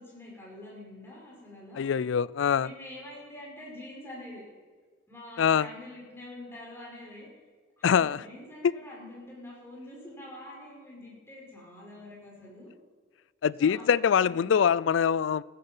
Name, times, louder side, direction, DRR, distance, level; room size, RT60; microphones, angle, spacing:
voice 1, 0.0-2.0 2.6-4.4 5.1-7.3 7.8-12.7 13.6-14.6, left 1 dB, 15° left, -4 dB, 5.7 m, -46 dB
voice 2, 1.8-2.7 5.4-5.7 7.8-8.2 8.6-8.7 13.4-15.4, left 7 dB, 80° left, 21 dB, 0.4 m, -24 dB
16.0 x 13.5 x 5.5 m, 1.4 s
head